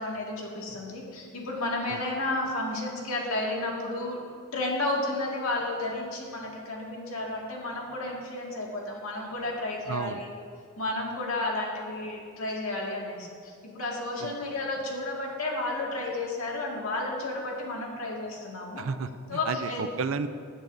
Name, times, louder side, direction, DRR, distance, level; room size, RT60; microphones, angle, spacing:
voice 1, 0.0-4.2 4.5-10.3 10.8-18.8 19.3-19.8, left 2 dB, 90° left, -2 dB, 2.0 m, -32 dB
voice 2, 9.9-10.2 14.2-14.3 18.8-20.3, right 5 dB, 70° right, 12 dB, 0.5 m, -32 dB
16.0 x 8.9 x 2.6 m, 2.2 s
head